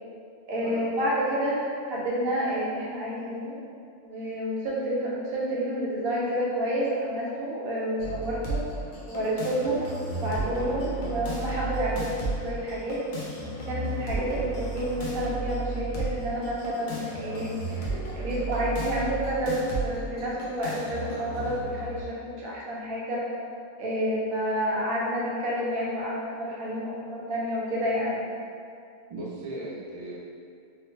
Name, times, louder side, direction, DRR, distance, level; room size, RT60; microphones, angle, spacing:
voice 1, 0.5-3.6 4.0-8.6 9.1-9.8 10.1-13.0 13.7-23.2 23.8-28.2, equal, 80° right, -5 dB, 1.1 m, -29 dB
sound 1, 8.0-22.0, right 2 dB, 65° left, 0.5 m, -34 dB
voice 2, 29.1-30.2, right 2 dB, 50° right, -7 dB, 0.4 m, -37 dB
3.1 x 2.1 x 3.0 m, 2.3 s
omnidirectional pair, 1.5 m